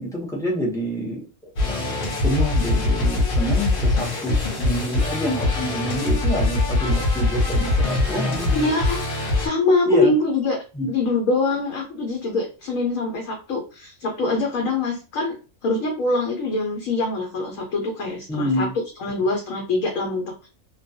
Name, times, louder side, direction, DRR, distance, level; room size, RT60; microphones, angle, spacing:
voice 1, 0.0-8.5 9.9-10.1 10.7-10.9 18.3-18.7, equal, 5° left, -3 dB, 0.4 m, -27 dB
sound 1, 1.6-9.5, left 2 dB, 50° left, 0.8 m, -22 dB
voice 2, 8.5-10.6 10.9-18.7 19.0-20.5, left 3 dB, 80° left, 1 dB, 1.1 m, -24 dB
2.3 x 2.2 x 2.6 m, 0.32 s
omnidirectional pair, 1.4 m